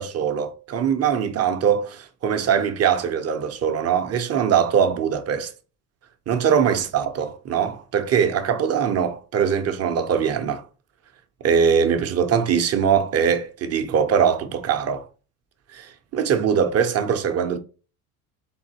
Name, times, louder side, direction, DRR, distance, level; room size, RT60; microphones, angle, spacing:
voice 1, 0.0-5.5 6.3-10.6 11.4-15.0 15.7-17.6, right 7 dB, 40° right, 0.7 m, -22 dB
3.8 x 3.8 x 2.8 m
supercardioid pair, 110°, 40 cm